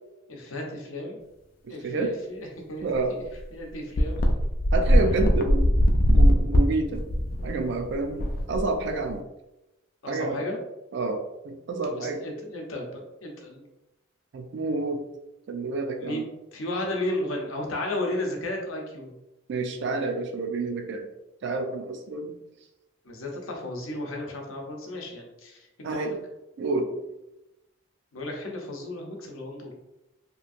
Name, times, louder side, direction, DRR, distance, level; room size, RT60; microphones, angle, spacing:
voice 1, 0.3-1.2 1.7-3.2 3.5-4.2 10.0-10.6 11.8-13.6 16.0-16.2 16.5-19.1 23.0-26.1 28.1-29.7, left 1 dB, 90° left, 0 dB, 0.7 m, -34 dB
voice 2, 1.6-2.1 2.8-3.1 4.7-5.8 6.1-7.1 7.4-9.2 10.1-10.4 10.9-12.2 14.3-15.0 15.5-16.2 19.5-21.1 21.4-22.3 25.8-26.1 26.6-26.9, right 3 dB, 60° right, 5 dB, 0.3 m, -29 dB
sound 1, 2.9-3.0 3.3-3.4 4.0-9.1, equal, 45° left, 0.3 m, -21 dB
2.8 x 2.5 x 2.5 m, 0.94 s
head